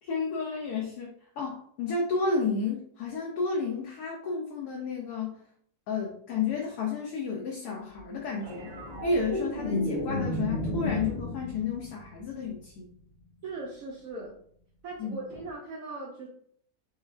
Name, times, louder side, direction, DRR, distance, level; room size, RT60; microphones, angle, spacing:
voice 1, 0.0-5.4 5.9-8.7 9.0-12.9 15.0-15.2, left 4 dB, 70° left, -1 dB, 1.1 m, -31 dB
sound 1, 8.4-12.9 15.3-15.5, left 1 dB, 40° right, 1.0 m, -33 dB
voice 2, 13.4-14.4 14.8-16.3, right 2 dB, 65° right, -4 dB, 0.9 m, -39 dB
4.3 x 2.3 x 2.4 m, 0.63 s
omnidirectional pair, 1.8 m